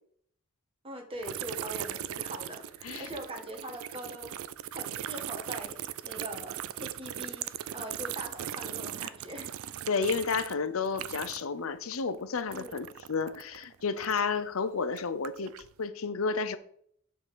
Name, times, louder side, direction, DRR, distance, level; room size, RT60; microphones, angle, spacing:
voice 1, 0.8-4.3 4.7-9.5 12.5-12.8, right 1 dB, 25° right, 1.4 m, -42 dB
sound 1, 1.2-11.6 11.9-14.4 14.9-15.7, right 11 dB, 90° right, 0.4 m, -39 dB
voice 2, 9.9-15.5 15.8-16.6, left 5 dB, 80° left, 0.7 m, -31 dB
7.5 x 3.9 x 6.7 m
head